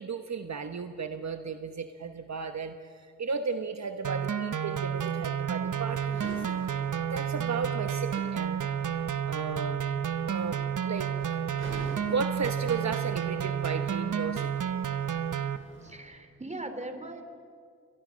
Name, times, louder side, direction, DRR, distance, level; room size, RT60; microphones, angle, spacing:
voice 1, 0.0-6.4 7.1-8.8 9.3-9.8 10.3-11.1 12.0-14.5, right 5 dB, 60° right, 7 dB, 1.2 m, -34 dB
sound 1, 4.0-15.6, right 8 dB, 80° right, 1.0 m, -31 dB
sound 2, 5.5-16.0, right 1 dB, 40° right, 6.0 m, -49 dB
voice 2, 15.8-17.2, right 2 dB, 20° right, 7 dB, 3.0 m, -39 dB
29.5 x 24.5 x 6.4 m, 2.2 s
wide cardioid pair, 80°, 30 cm